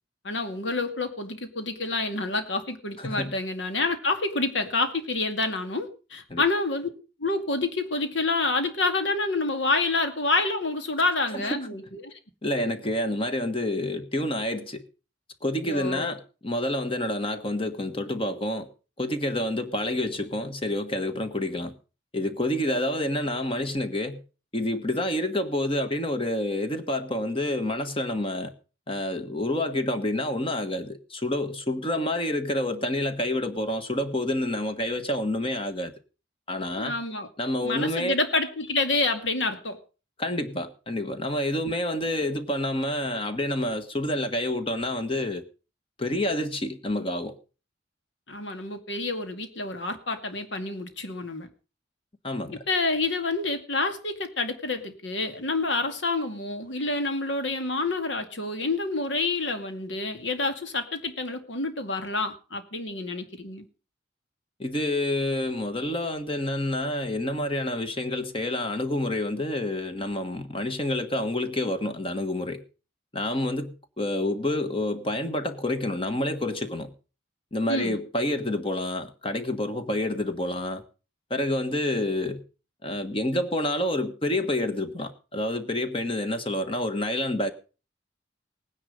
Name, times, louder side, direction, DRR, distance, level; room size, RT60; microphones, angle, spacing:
voice 1, 0.2-6.9 7.2-12.1 15.6-16.1 36.8-37.3 37.6-39.8 48.3-51.5 52.7-63.7 77.7-78.0, left 3 dB, 75° left, 2.2 m, -28 dB
voice 2, 3.0-3.3 6.3-6.4 11.5-11.7 12.4-14.8 15.4-18.7 19.0-21.7 22.1-24.2 24.5-28.5 28.9-35.9 36.5-37.0 37.4-38.1 40.2-45.4 46.0-47.3 52.2-52.6 64.6-72.6 73.1-76.9 77.5-80.8 81.3-82.4 82.8-87.5, left 1 dB, 30° left, 1.5 m, -28 dB
18.0 x 10.0 x 5.4 m
head